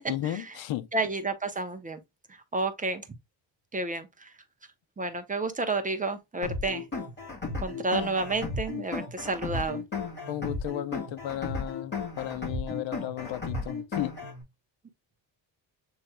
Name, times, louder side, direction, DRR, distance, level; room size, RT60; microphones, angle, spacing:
voice 1, 0.1-0.9 10.3-14.2, left 13 dB, 75° left, 0.7 m, -34 dB
voice 2, 0.9-2.0 2.5-3.0 3.7-4.3 5.0-6.8 7.6-9.8, right 3 dB, 20° right, 0.6 m, -30 dB
sound 1, 6.4-14.4, left 3 dB, 25° left, 2.4 m, -34 dB
7.5 x 3.1 x 2.2 m
cardioid pair, 155°, 45 cm